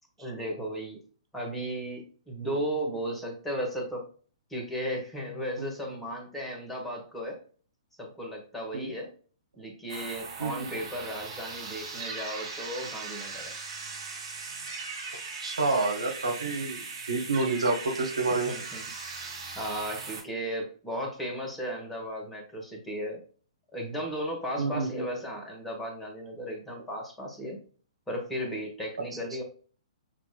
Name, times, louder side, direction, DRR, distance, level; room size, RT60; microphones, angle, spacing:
voice 1, 0.2-1.0 1.3-4.0 4.5-7.4 8.0-9.1 9.6-13.5 18.5-18.8 19.5-23.2 23.7-27.6 28.1-29.4, equal, 5° left, -1 dB, 1.4 m, -35 dB
sound 1, 9.9-20.2, right 4 dB, 55° right, 1.8 m, -39 dB
voice 2, 15.4-18.5 24.6-25.0, right 3 dB, 75° right, 3 dB, 1.1 m, -28 dB
6.3 x 2.9 x 2.3 m, 0.41 s
figure-of-eight pair, 120°, 3 cm